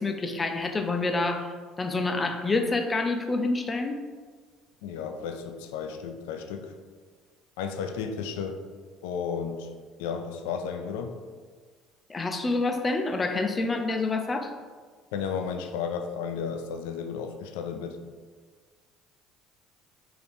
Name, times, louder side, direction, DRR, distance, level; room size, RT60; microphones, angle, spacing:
voice 1, 0.0-4.0 12.1-14.5, left 3 dB, 25° left, 5 dB, 0.5 m, -27 dB
voice 2, 4.8-6.7 7.6-8.6 9.0-9.7 10.0-11.2 15.1-18.0, left 6 dB, 85° left, 6 dB, 0.4 m, -33 dB
3.4 x 2.8 x 4.1 m, 1.5 s
supercardioid pair, 85°, 0 cm